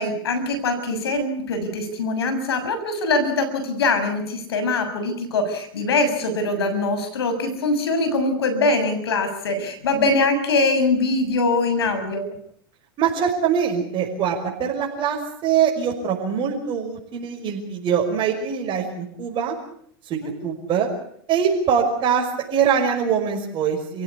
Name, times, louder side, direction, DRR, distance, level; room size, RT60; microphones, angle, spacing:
voice 1, 0.0-12.3 20.2-20.3, left 2 dB, 85° left, 8 dB, 6.9 m, -23 dB
voice 2, 13.0-19.5 20.1-20.9 21.3-24.0, right 7 dB, 40° right, 1 dB, 5.8 m, -23 dB
28.5 x 16.5 x 8.5 m, 0.68 s
hypercardioid pair, 110°, 13 cm